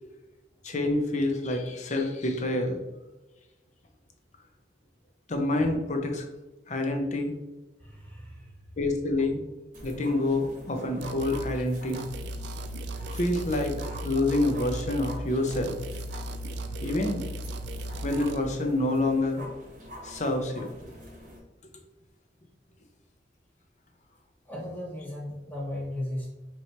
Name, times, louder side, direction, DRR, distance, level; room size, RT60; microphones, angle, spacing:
voice 1, 0.6-2.8 5.3-6.3 6.7-7.3 8.8-9.4 9.8-12.0 13.1-13.7 14.0-15.8 16.8-17.2 18.0-19.4 20.0-21.0, left 2 dB, 40° left, 4 dB, 0.6 m, -27 dB
voice 2, 7.8-8.6 24.4-26.3, left 1 dB, 10° left, -5 dB, 1.3 m, -36 dB
sound 1, 9.7-21.4, equal, 45° right, 1.0 m, -45 dB
sound 2, 11.0-11.5 11.9-15.2 15.5-18.4, right 1 dB, 75° right, 0.3 m, -36 dB
4.6 x 3.0 x 2.7 m, 1.1 s
head